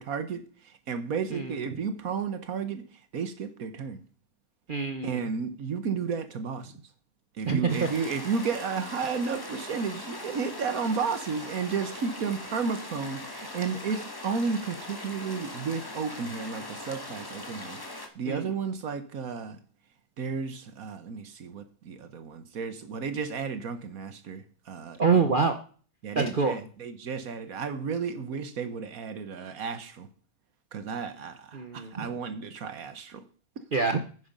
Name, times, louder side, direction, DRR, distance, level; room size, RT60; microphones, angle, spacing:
voice 1, 0.0-2.9 3.1-4.0 5.0-6.8 7.4-19.6 20.2-25.2 26.0-30.1 30.7-33.2, right 5 dB, 70° right, 1.6 m, -33 dB
voice 2, 4.7-5.2 7.5-7.9 18.3-18.5 25.0-25.6 26.1-26.5 31.5-32.1 33.7-34.0, right 5 dB, 40° right, 0.9 m, -25 dB
sound 1, 7.7-18.1, left 2 dB, 15° left, 1.4 m, -41 dB
9.7 x 9.6 x 5.3 m
omnidirectional pair, 1.6 m